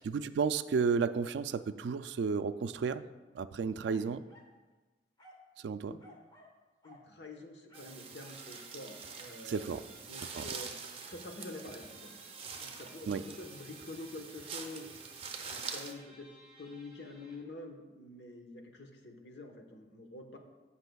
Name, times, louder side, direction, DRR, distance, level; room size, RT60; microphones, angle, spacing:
voice 1, 0.0-3.1 3.3-4.2 5.6-6.0 9.4-9.8 10.3-10.5 13.1-13.2, right 5 dB, 85° right, 13 dB, 0.3 m, -32 dB
sound 1, 3.8-4.6 5.2-5.5 6.0-6.6 6.8-7.1 7.7-8.5 9.6-9.8, equal, 25° left, 1.1 m, -58 dB
voice 2, 6.8-10.7 11.1-12.2 12.6-15.1 15.3-16.3 16.6-20.4, left 2 dB, 80° left, 3 dB, 1.1 m, -47 dB
sound 2, 7.7-15.9, right 5 dB, 30° right, 0.7 m, -45 dB
Guitar, 8.3-17.5, right 1 dB, 5° right, 2.4 m, -60 dB
16.0 x 5.8 x 2.3 m, 1.2 s
head